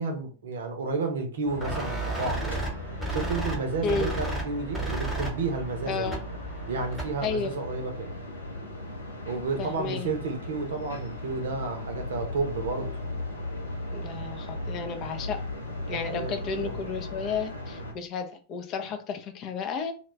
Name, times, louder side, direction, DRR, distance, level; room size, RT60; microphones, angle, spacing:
voice 1, 0.0-2.7 3.1-6.2 6.7-8.1 9.2-12.9 15.8-16.8, right 3 dB, 65° right, 5 dB, 0.7 m, -31 dB
sound 1, 1.4-17.9, left 1 dB, 80° left, 0.7 m, -37 dB
sound 2, 1.6-7.3, right 2 dB, ahead, 1.1 m, -33 dB
voice 2, 3.8-4.2 5.9-6.2 7.2-7.5 9.6-10.1 13.9-15.4 15.9-19.9, left 5 dB, 35° left, 7 dB, 0.5 m, -32 dB
2.4 x 2.2 x 3.1 m, 0.37 s
figure-of-eight pair, 90°, 0 cm